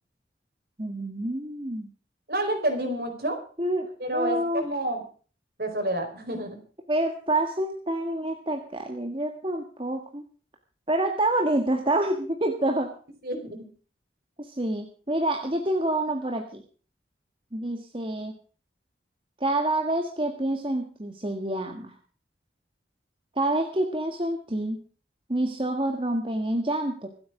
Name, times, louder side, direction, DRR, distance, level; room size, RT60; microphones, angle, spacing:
voice 1, 0.8-1.9 3.6-4.6 6.9-10.2 10.9-12.9 14.4-16.6 17.5-18.3 19.4-21.9 23.3-24.8 25.3-27.1, right 1 dB, 30° right, 3 dB, 1.7 m, -27 dB
voice 2, 2.3-3.4 4.0-5.0 5.6-6.6 13.2-13.7, right 1 dB, 55° right, 5 dB, 4.6 m, -29 dB
25.5 x 8.6 x 4.9 m, 0.41 s
head